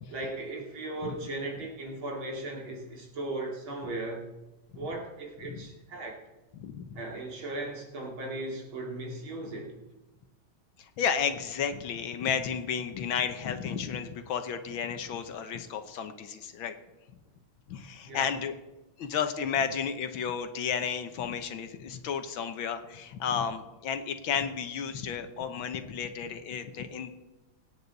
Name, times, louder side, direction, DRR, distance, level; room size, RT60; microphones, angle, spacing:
voice 1, 0.1-4.3 4.7-6.2 6.9-9.7 18.1-18.3, right 2 dB, 75° right, 0 dB, 3.3 m, -37 dB
voice 2, 6.6-7.0 10.8-16.8 17.7-18.5 19.0-27.1, left 7 dB, 75° left, 9 dB, 1.7 m, -32 dB
24.0 x 9.5 x 4.1 m, 1.0 s
omnidirectional pair, 2.3 m